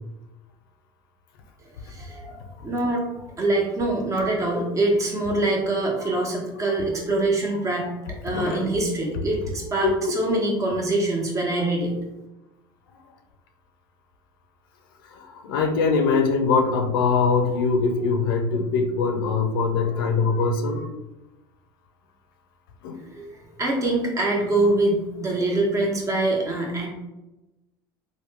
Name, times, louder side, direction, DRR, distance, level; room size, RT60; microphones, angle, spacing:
voice 1, 1.9-3.0 3.4-7.9 8.2-11.9 23.1-23.3 23.6-26.9, right 2 dB, 30° right, -1 dB, 1.0 m, -24 dB
voice 2, 8.3-8.7 9.8-10.1 15.1-20.9 22.8-23.0, left 4 dB, 80° left, 5 dB, 0.5 m, -22 dB
3.0 x 2.2 x 3.2 m, 1.0 s
hypercardioid pair, 90°, 12 cm